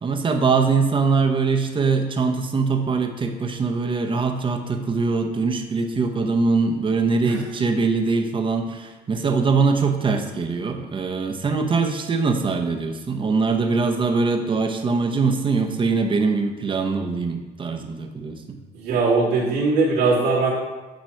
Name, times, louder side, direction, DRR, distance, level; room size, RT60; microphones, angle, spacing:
voice 1, 0.0-18.6, right 4 dB, 30° right, 5 dB, 0.9 m, -22 dB
voice 2, 18.7-20.5, right 3 dB, 90° right, -8 dB, 2.3 m, -20 dB
9.0 x 3.1 x 5.7 m, 1.2 s
cardioid pair, 110°, 17 cm